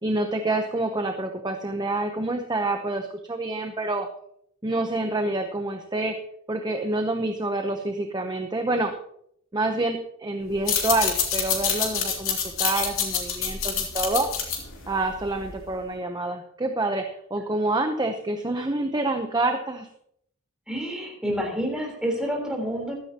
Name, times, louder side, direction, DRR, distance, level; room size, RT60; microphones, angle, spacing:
voice 1, 0.0-4.1 4.6-6.2 6.5-8.9 9.5-14.3 14.9-19.9, right 2 dB, 20° right, 5 dB, 0.8 m, -27 dB
sound 1, 10.5-15.7, left 7 dB, 85° left, 2.7 m, -27 dB
voice 2, 20.7-22.9, equal, 5° right, -1 dB, 3.8 m, -28 dB
15.5 x 12.5 x 2.9 m, 0.71 s
head